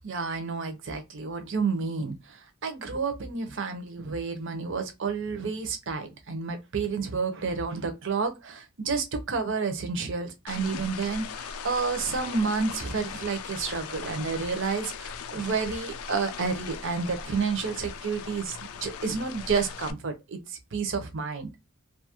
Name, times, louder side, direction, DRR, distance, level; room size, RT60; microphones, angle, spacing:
voice 1, 0.0-21.5, right 5 dB, 60° right, 0.7 m, -30 dB
sound 1, 10.5-19.9, left 6 dB, 90° left, 0.4 m, -39 dB
2.7 x 2.4 x 2.8 m
head